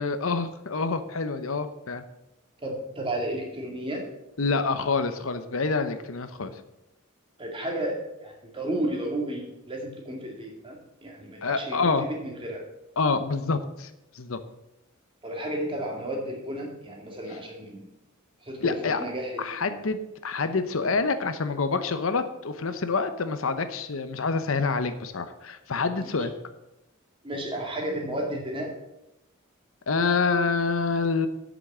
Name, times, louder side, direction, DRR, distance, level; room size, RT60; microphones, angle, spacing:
voice 1, 0.0-2.0 4.4-6.5 11.4-12.1 13.0-13.9 14.1-14.4 18.6-19.0 19.4-26.3 29.9-31.3, left 4 dB, 70° left, 10 dB, 0.8 m, -27 dB
voice 2, 2.6-4.0 7.4-11.8 12.2-12.6 15.2-17.9 18.4-19.8 26.0-26.1 27.2-28.7, right 1 dB, 25° right, 0 dB, 2.1 m, -33 dB
8.2 x 6.2 x 7.4 m, 0.91 s
head